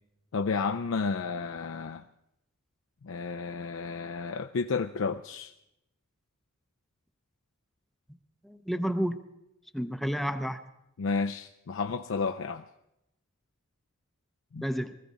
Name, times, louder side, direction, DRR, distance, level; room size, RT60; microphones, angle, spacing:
voice 1, 0.3-2.0 3.0-5.5 11.0-12.6 14.5-14.6, left 4 dB, 65° left, 7 dB, 0.4 m, -31 dB
voice 2, 8.4-9.2 9.7-10.6 14.6-14.9, equal, ahead, 9 dB, 0.5 m, -30 dB
20.0 x 14.5 x 4.1 m, 0.85 s
head